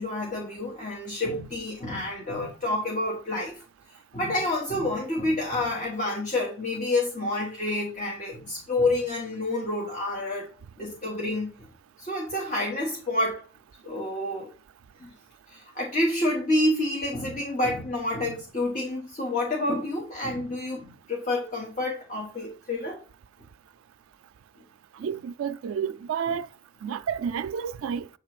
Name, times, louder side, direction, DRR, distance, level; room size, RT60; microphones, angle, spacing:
voice 1, 0.0-3.6 3.9-10.5 10.8-11.6 12.0-13.4 13.8-14.5 15.0-15.1 15.5-23.0, left 1 dB, 35° left, 1.2 m, -28 dB
voice 2, 25.0-26.5 26.8-28.1, right 7 dB, 85° right, 0.3 m, -30 dB
7.9 x 3.3 x 4.7 m
head